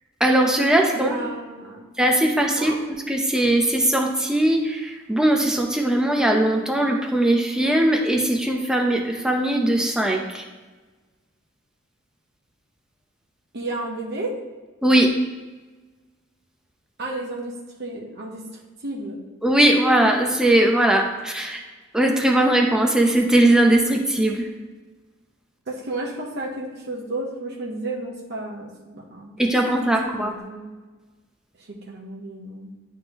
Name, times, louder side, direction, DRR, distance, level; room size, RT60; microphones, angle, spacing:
voice 1, 0.2-1.1 2.0-2.8 3.1-10.5 14.8-15.2 19.4-21.6 21.9-24.5 29.4-30.3, right 1 dB, 5° right, 1 dB, 0.7 m, -19 dB
voice 2, 0.9-1.9 2.6-2.8 13.5-14.3 17.0-17.5 17.8-18.4 18.8-19.2 25.7-29.4 29.8-30.7 31.6-32.7, right 2 dB, 55° right, -2 dB, 1.0 m, -32 dB
10.5 x 3.6 x 3.0 m, 1.3 s
head